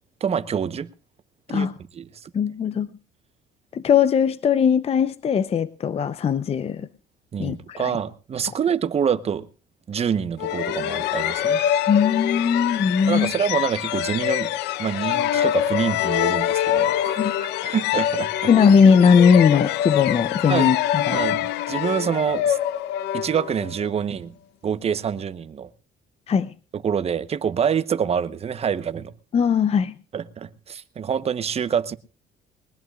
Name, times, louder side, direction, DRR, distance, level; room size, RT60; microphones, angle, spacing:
voice 1, 0.2-0.9 1.5-1.7 1.9-2.3 7.3-9.5 9.9-11.6 13.1-14.5 14.8-18.5 20.5-20.7 21.1-22.6 23.1-24.3 24.6-25.7 26.7-29.1 30.1-31.9, right 7 dB, 35° right, 1.0 m, -26 dB
voice 2, 2.3-2.9 3.7-6.9 7.4-8.0 11.9-13.3 17.2-17.3 18.5-21.2 26.3-26.5 29.3-29.9, left 6 dB, 35° left, 0.7 m, -19 dB
sound 1, 10.4-23.9, left 11 dB, 90° left, 0.8 m, -24 dB
22.0 x 20.0 x 2.4 m
cardioid pair, 110°, 17 cm